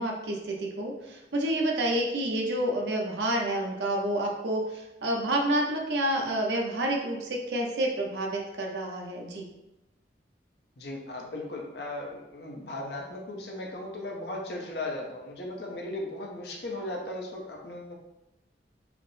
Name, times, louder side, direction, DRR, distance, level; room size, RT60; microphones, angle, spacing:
voice 1, 0.0-9.5, right 1 dB, 75° right, 0 dB, 0.7 m, -29 dB
voice 2, 10.8-17.9, left 1 dB, 70° left, 0 dB, 0.7 m, -37 dB
4.9 x 2.0 x 3.1 m, 0.95 s
head